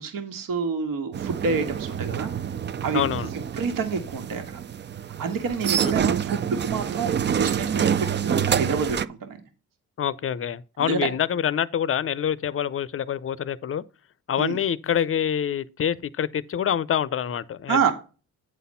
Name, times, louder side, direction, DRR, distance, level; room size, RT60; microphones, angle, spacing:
voice 1, 0.0-2.3 2.8-3.0 3.6-4.4 5.2-9.4 10.8-11.0 14.4-14.6 17.7-17.9, right 5 dB, 65° right, 1.8 m, -28 dB
sound 1, 1.1-9.1, right 8 dB, 30° right, 0.4 m, -27 dB
voice 2, 2.9-3.3 5.8-6.1 10.0-13.8 14.3-17.9, left 9 dB, 40° left, 0.6 m, -26 dB
9.1 x 4.2 x 5.5 m
cardioid pair, 90°, 35 cm